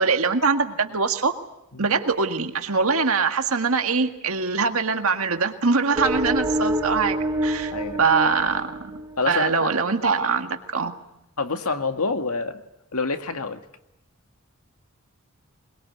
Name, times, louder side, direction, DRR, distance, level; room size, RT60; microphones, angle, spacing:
voice 1, 0.0-1.3 1.8-7.7 8.0-8.9 9.3-10.9, right 4 dB, 75° right, 6 dB, 1.9 m, -23 dB
sound 1, 6.0-9.5, right 1 dB, 15° right, 2.2 m, -27 dB
voice 2, 9.2-9.7 11.4-12.6 12.9-13.6, left 4 dB, 85° left, 7 dB, 2.0 m, -27 dB
22.5 x 22.5 x 9.5 m, 0.86 s
head